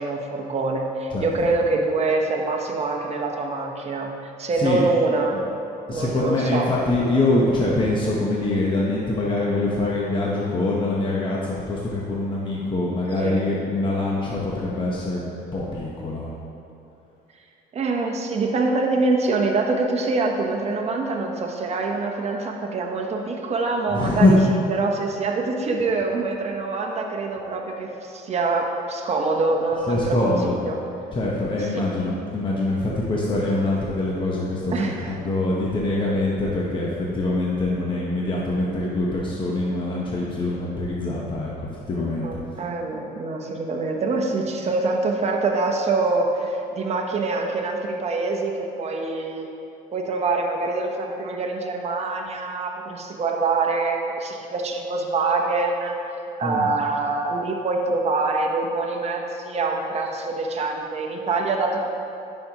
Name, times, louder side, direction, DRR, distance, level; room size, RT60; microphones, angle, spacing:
voice 1, 0.0-5.4 5.9-6.7 7.8-7.9 13.2-13.4 17.7-30.3 30.6-30.8 31.7-31.8 34.7-35.2 42.2-49.5 49.9-55.9 56.4-61.8, right 3 dB, 40° right, 1 dB, 0.9 m, -25 dB
voice 2, 1.1-1.5 4.5-4.8 5.3-5.4 5.9-16.3 23.9-24.4 29.8-30.6 31.1-42.3 56.4-56.7, left 2 dB, 30° left, -4 dB, 1.0 m, -24 dB
10.5 x 5.6 x 2.9 m, 2.8 s
cardioid pair, 110°, 17 cm